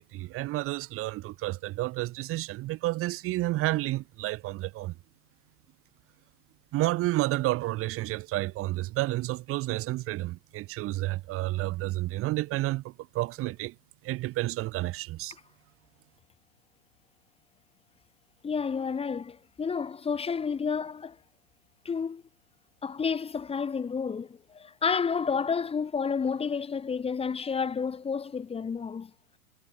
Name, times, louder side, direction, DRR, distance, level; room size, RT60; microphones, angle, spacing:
voice 1, 0.0-4.9 6.7-13.7 14.0-15.3, right 18 dB, 30° right, 3.9 m, -30 dB
voice 2, 18.4-21.2 21.8-22.2 22.8-29.1, left 6 dB, 15° left, 4.3 m, -30 dB
figure-of-eight pair, 105°, 45 cm